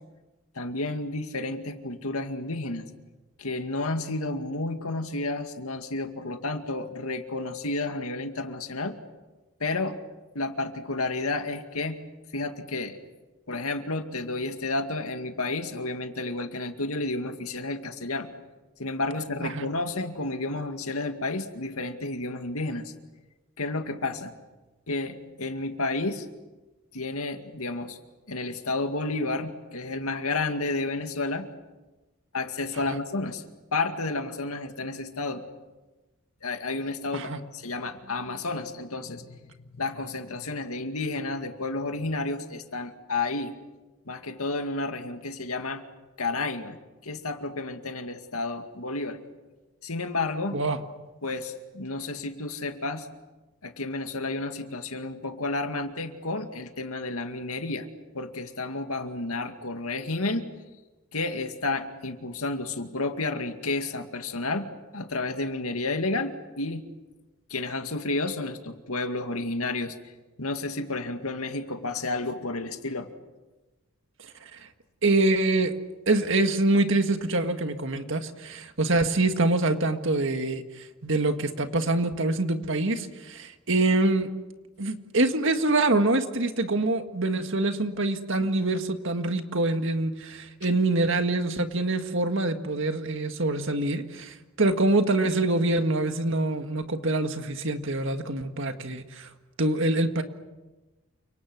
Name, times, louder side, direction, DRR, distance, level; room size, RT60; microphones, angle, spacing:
voice 1, 0.6-2.9 3.4-9.0 9.6-10.0 10.3-12.0 12.3-13.0 13.5-18.3 18.8-22.9 23.6-24.3 24.9-26.3 26.9-28.0 28.3-31.5 32.3-33.4 33.7-35.4 36.4-43.5 44.1-45.8 46.2-46.8 47.0-49.2 49.8-50.6 51.2-53.1 53.6-57.9 58.1-60.5 61.1-64.7 64.9-66.9 67.5-69.9 70.4-73.1, left 2 dB, 75° left, 6 dB, 2.2 m, -31 dB
voice 2, 75.0-75.7 76.1-84.3 84.8-99.3 99.6-100.2, right 2 dB, 55° right, 7 dB, 1.9 m, -25 dB
29.5 x 26.0 x 6.3 m, 1.1 s
head